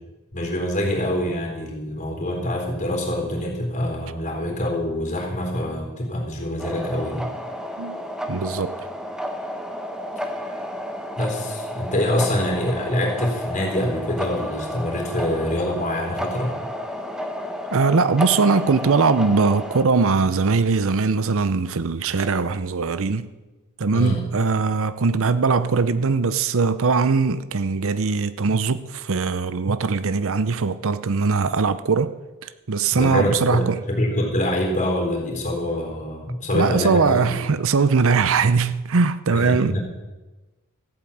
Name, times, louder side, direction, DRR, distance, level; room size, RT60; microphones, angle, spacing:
voice 1, 0.3-7.3 11.2-16.5 23.9-24.2 32.9-37.4 39.3-39.8, left 1 dB, 35° left, 4.0 m, -25 dB
sound 1, 6.6-19.9, equal, 5° right, 1.1 m, -31 dB
voice 2, 8.3-8.8 17.7-23.3 23.8-32.1 32.4-33.8 36.5-39.8, right 4 dB, 65° right, 0.7 m, -21 dB
14.5 x 8.9 x 8.6 m
head